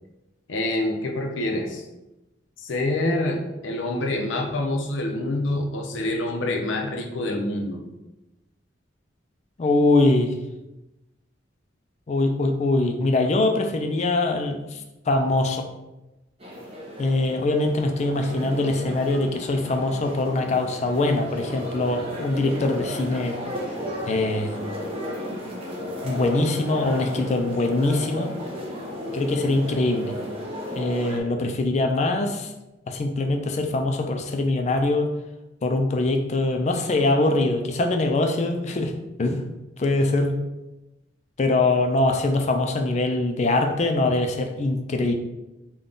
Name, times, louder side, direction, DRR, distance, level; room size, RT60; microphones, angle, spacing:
voice 1, 0.5-1.8 2.6-7.8, left 1 dB, 85° left, 2 dB, 0.6 m, -26 dB
voice 2, 9.6-10.3 12.1-14.8 15.1-15.7 17.0-23.4 24.1-24.5 26.0-28.3 29.1-30.2 30.8-32.5 32.9-35.1 35.6-39.5 39.8-40.4 41.4-45.1, left 2 dB, 35° left, 5 dB, 0.4 m, -23 dB
sound 1, 16.4-31.2, left 1 dB, 30° right, 0.7 m, -34 dB
3.6 x 2.3 x 3.8 m, 0.99 s
head